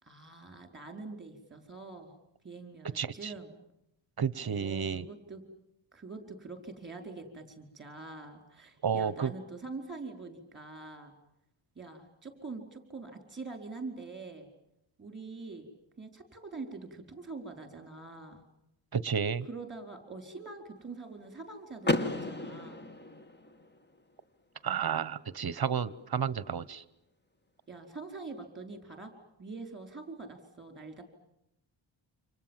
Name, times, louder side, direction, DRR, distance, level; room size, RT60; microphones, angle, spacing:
voice 1, 0.0-2.1 2.4-3.5 4.4-5.4 5.9-11.1 11.7-14.5 15.0-15.7 16.0-18.4 19.5-22.9 27.7-29.1 29.4-31.0, right 3 dB, 25° right, 6 dB, 4.7 m, -44 dB
voice 2, 2.9-3.3 4.2-5.1 8.8-9.3 18.9-19.5 24.6-26.8, right 7 dB, 50° right, 18 dB, 1.0 m, -31 dB
Car / Door, 21.8-23.8, left 2 dB, 20° left, 1.3 m, -33 dB
29.0 x 26.5 x 7.4 m, 0.83 s
wide cardioid pair, 155°, 48 cm